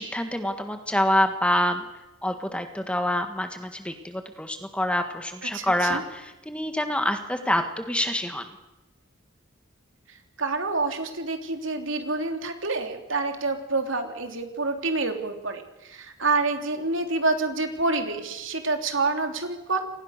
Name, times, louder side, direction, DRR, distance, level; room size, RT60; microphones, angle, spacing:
voice 1, 0.0-1.9 2.2-8.5, left 1 dB, 5° left, 7 dB, 1.7 m, -26 dB
voice 2, 5.5-6.0 10.1-19.9, right 3 dB, 65° right, 5 dB, 3.5 m, -27 dB
29.0 x 24.5 x 6.8 m, 1.0 s
head